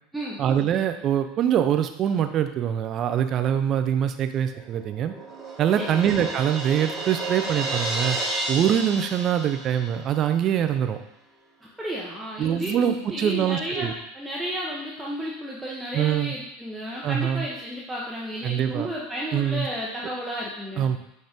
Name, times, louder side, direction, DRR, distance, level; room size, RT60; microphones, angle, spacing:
voice 1, 0.4-5.1 5.6-8.2 8.5-11.0 12.4-13.9 15.9-16.3 17.0-17.5 18.4-18.9 19.3-19.7 20.8-21.0, right 9 dB, 40° right, 8 dB, 0.4 m, -24 dB
Crash cymbal, 4.5-10.2, right 2 dB, 25° right, 1.1 m, -32 dB
voice 2, 11.8-12.8 13.1-20.9, equal, 5° right, -5 dB, 0.8 m, -32 dB
6.1 x 2.5 x 3.5 m, 0.84 s
hypercardioid pair, 80°, 0 cm